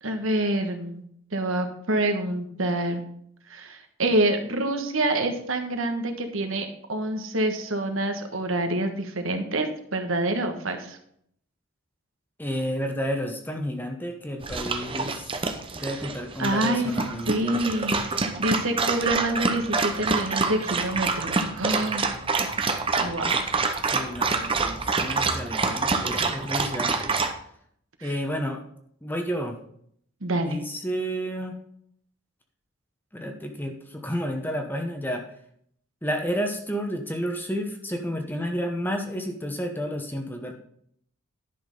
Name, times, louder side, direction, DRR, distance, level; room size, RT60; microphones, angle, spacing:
voice 1, 0.0-1.0 1.3-3.0 3.5-11.0 16.4-16.9 17.3-22.1 23.0-23.4 28.0-28.1 30.2-30.6, right 1 dB, 75° right, 6 dB, 1.4 m, -27 dB
voice 2, 12.4-15.3 15.7-17.6 23.9-27.3 28.0-28.6 29.0-29.6 30.3-31.6 33.1-35.2 36.0-40.5, equal, 10° left, 4 dB, 1.0 m, -31 dB
Dog, 14.4-27.3, right 4 dB, 25° right, 0.8 m, -27 dB
11.0 x 6.2 x 5.3 m, 0.67 s
head